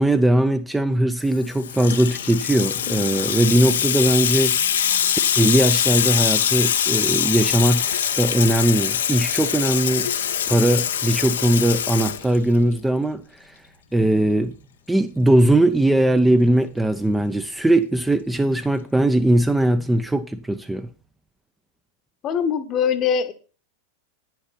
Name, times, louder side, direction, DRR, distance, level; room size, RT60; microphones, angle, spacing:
voice 1, 0.0-4.6 5.4-13.2 13.5-13.6 13.9-14.5 14.9-20.9, right 1 dB, 5° right, 0.6 m, -20 dB
Water tap faucet / Sink (filling or washing), 1.3-12.8, left 9 dB, 65° left, 0.6 m, -23 dB
voice 2, 22.2-23.3, left 7 dB, 30° left, 1.0 m, -22 dB
9.8 x 7.7 x 4.3 m
figure-of-eight pair, 90°, 0 cm